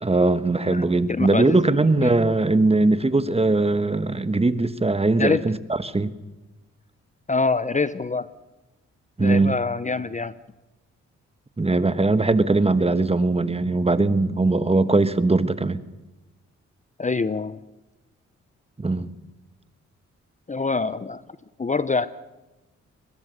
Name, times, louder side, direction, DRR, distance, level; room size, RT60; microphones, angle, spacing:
voice 1, 0.0-5.6 5.8-6.1 9.2-9.5 11.6-15.8 18.8-19.1, right 2 dB, 20° right, 12 dB, 1.3 m, -20 dB
voice 2, 1.2-2.2 5.2-5.5 7.3-8.3 9.2-10.4 17.0-17.6 20.5-21.2 21.6-22.1, left 4 dB, 25° left, 15 dB, 0.7 m, -25 dB
24.5 x 21.0 x 6.7 m, 1.1 s
supercardioid pair, 55°, 30 cm